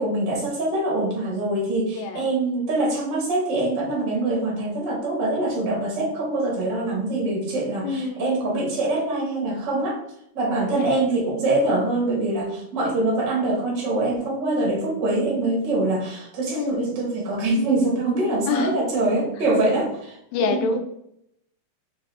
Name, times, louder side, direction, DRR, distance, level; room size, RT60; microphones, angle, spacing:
voice 1, 0.0-10.0 10.3-20.2 20.5-20.6, right 2 dB, 75° right, -2 dB, 1.0 m, -24 dB
voice 2, 1.9-2.3 7.8-8.3 10.7-11.0 13.2-13.3 16.5-16.9 18.5-18.8 20.3-20.8, left 4 dB, 85° left, 5 dB, 2.3 m, -26 dB
5.5 x 2.5 x 3.3 m, 0.76 s
omnidirectional pair, 3.8 m